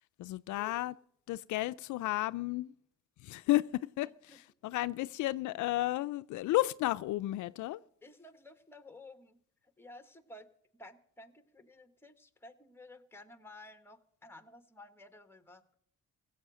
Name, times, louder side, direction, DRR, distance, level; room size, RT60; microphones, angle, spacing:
voice 1, 0.2-0.9 1.3-2.7 3.2-7.8, left 17 dB, 75° left, 0.4 m, -33 dB
voice 2, 8.0-10.5 10.8-15.7, left 2 dB, 10° left, 1.4 m, -54 dB
16.5 x 7.9 x 6.2 m
cardioid pair, 90°, 30 cm